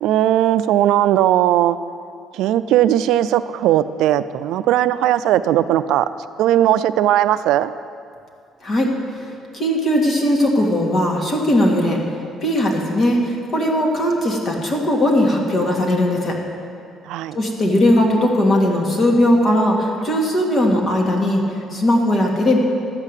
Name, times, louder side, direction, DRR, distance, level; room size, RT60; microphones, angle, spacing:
voice 1, 0.0-1.8 2.3-6.1 6.4-7.7 17.1-17.4, right 12 dB, 80° right, 13 dB, 0.3 m, -17 dB
voice 2, 9.5-12.0 12.4-16.4 17.3-21.4 21.7-22.6, left 1 dB, 40° left, 0 dB, 2.0 m, -18 dB
12.5 x 5.7 x 8.1 m, 2.4 s
cardioid pair, 110°, 0 cm